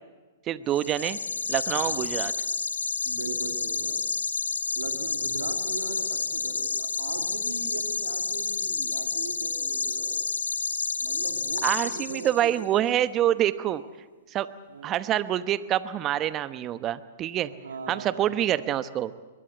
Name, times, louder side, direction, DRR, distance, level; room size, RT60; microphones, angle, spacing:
voice 1, 0.5-1.2 1.5-2.3 11.6-13.8 14.3-14.5 14.8-17.5 17.9-19.1, right 12 dB, 30° right, 13 dB, 1.0 m, -26 dB
sound 1, 0.7-12.5, left 4 dB, 85° left, 1.2 m, -30 dB
voice 2, 1.7-2.1 3.0-4.0 4.8-10.3 11.0-12.9 14.7-15.0 17.5-18.5, right 4 dB, 80° right, 5 dB, 2.2 m, -40 dB
22.5 x 21.5 x 7.9 m, 1.3 s
hypercardioid pair, 110°, 0 cm